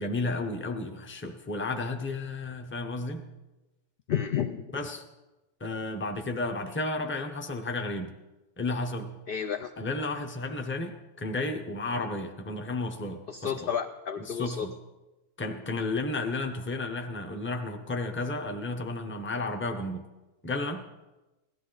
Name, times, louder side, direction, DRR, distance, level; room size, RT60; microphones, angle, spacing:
voice 1, 0.0-3.2 4.7-5.0 5.6-8.1 8.6-9.1 9.8-13.7 14.2-14.7 15.4-20.1 20.4-20.8, left 2 dB, 10° left, 5 dB, 0.6 m, -32 dB
voice 2, 4.1-4.7 9.3-9.7 13.3-14.7, left 8 dB, 60° left, 7 dB, 0.6 m, -31 dB
16.5 x 12.5 x 3.9 m, 1.1 s
omnidirectional pair, 1.4 m